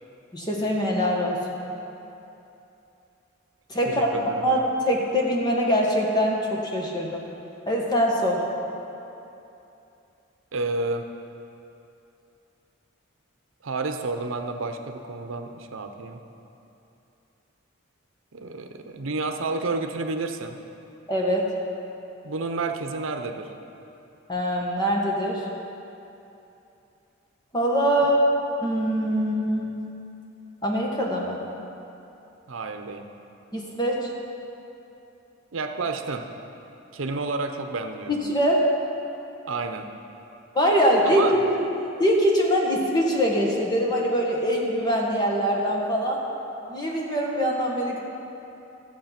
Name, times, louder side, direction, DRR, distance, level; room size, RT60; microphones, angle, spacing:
voice 1, 0.3-1.4 3.7-4.6 4.8-7.2 7.7-8.4 21.1-21.5 24.3-25.5 27.5-28.2 28.6-29.7 30.6-31.4 33.5-34.1 38.1-38.6 40.5-41.7 42.0-46.2 46.7-48.0, equal, 20° left, -2 dB, 1.5 m, -23 dB
voice 2, 3.8-4.4 10.5-11.1 13.6-16.2 18.3-20.6 22.2-23.5 32.5-33.1 35.5-36.3 36.9-38.1 39.5-39.9 41.0-41.3, right 3 dB, 80° right, 5 dB, 0.8 m, -30 dB
14.5 x 7.4 x 5.9 m, 2.9 s
head